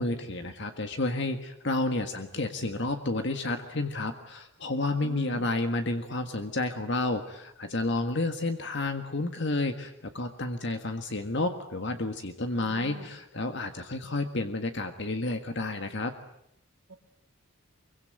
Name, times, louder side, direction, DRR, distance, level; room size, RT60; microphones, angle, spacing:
voice 1, 0.0-16.1, left 2 dB, 55° left, 7 dB, 1.7 m, -31 dB
voice 2, 5.0-5.5 12.5-13.1 16.9-17.0, right 2 dB, 65° right, 5 dB, 2.6 m, -44 dB
24.5 x 23.5 x 9.3 m, 0.75 s
head